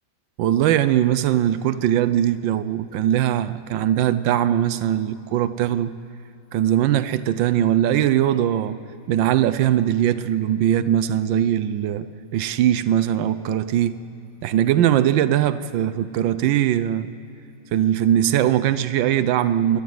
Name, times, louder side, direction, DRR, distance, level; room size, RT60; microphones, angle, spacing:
voice 1, 0.4-5.9 6.5-8.8 9.1-12.1 12.3-14.0 14.4-17.1 17.7-19.8, right 11 dB, 90° right, 13 dB, 1.4 m, -20 dB
25.5 x 12.5 x 9.3 m, 2.6 s
omnidirectional pair, 2.0 m